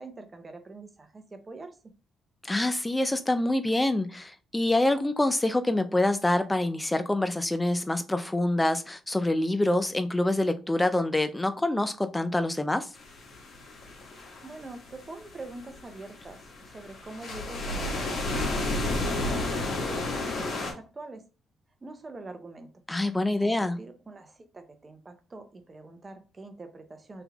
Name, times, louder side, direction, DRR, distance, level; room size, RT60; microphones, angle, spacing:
voice 1, 0.0-1.8 14.4-21.2 21.8-22.7 23.4-27.2, right 2 dB, 30° right, 0.8 m, -44 dB
voice 2, 2.4-12.9 22.9-23.8, left 1 dB, 10° left, 0.6 m, -26 dB
sound 1, 13.0-20.7, left 2 dB, 50° left, 1.6 m, -32 dB
3.4 x 3.0 x 3.5 m
cardioid pair, 80°, 0 cm